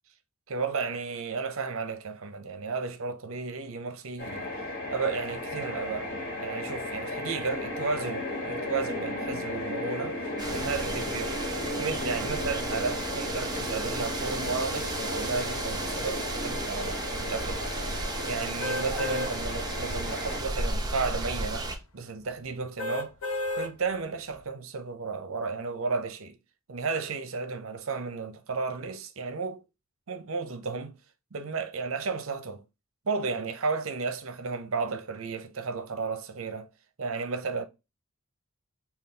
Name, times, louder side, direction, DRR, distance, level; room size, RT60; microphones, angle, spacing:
voice 1, 0.5-4.5 4.9-6.1 6.4-10.2 10.5-11.4 11.8-23.1 23.5-26.4 26.7-29.6 30.1-30.9 31.3-32.6 33.1-36.7 37.0-37.6, right 4 dB, 65° right, 0.7 m, -33 dB
sound 1, 4.2-20.4, left 2 dB, 45° left, 1.4 m, -35 dB
sound 2, 10.4-21.8, right 2 dB, 20° right, 0.7 m, -34 dB
sound 3, 18.6-19.3 19.9-20.0 22.8-23.7 24.3-24.4, left 1 dB, 90° left, 0.9 m, -31 dB
4.0 x 2.4 x 3.8 m
head